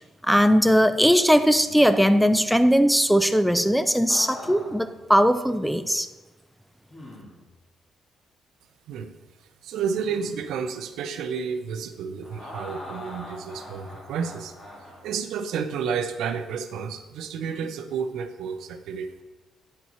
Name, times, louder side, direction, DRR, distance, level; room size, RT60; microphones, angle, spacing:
voice 1, 0.2-6.1, equal, ahead, 10 dB, 0.4 m, -19 dB
sound 1, 1.4-2.1 4.1-4.9 5.5-5.6 6.9-7.5 9.8-10.5 12.2-15.1 17.3-17.7, left 1 dB, 45° left, 2.2 m, -42 dB
voice 2, 9.6-14.5 15.0-19.2, right 6 dB, 80° right, 9 dB, 0.6 m, -31 dB
9.6 x 4.5 x 4.2 m, 1.1 s
cardioid pair, 90°, 0 cm